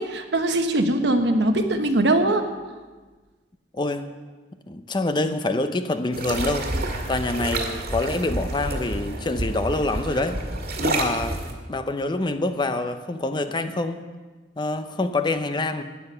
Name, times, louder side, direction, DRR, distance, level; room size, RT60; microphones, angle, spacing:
voice 1, 0.0-2.4, right 1 dB, 80° right, 6 dB, 1.2 m, -21 dB
voice 2, 3.7-4.0 4.7-6.7 7.1-10.4 10.8-11.4 11.7-14.0 14.6-15.8, left 2 dB, 25° left, 9 dB, 0.6 m, -26 dB
sound 1, 6.1-11.5, right 1 dB, 60° right, 1.8 m, -29 dB
12.5 x 9.7 x 5.6 m, 1.3 s
head